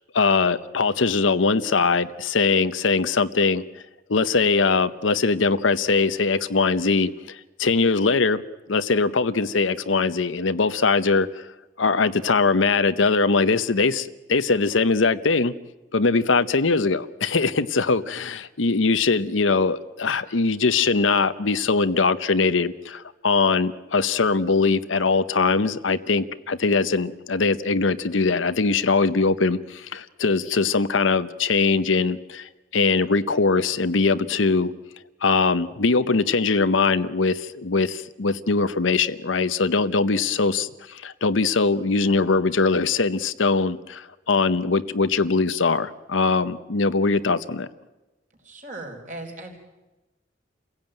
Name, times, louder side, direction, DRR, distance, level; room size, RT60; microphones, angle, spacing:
voice 1, 0.1-3.6 4.1-8.4 8.7-11.4 11.8-15.5 15.9-34.7 35.2-47.7, left 4 dB, 85° left, 13 dB, 0.9 m, -21 dB
voice 2, 48.4-49.6, right 2 dB, 40° right, 2 dB, 4.5 m, -37 dB
28.5 x 16.5 x 9.0 m, 1.1 s
head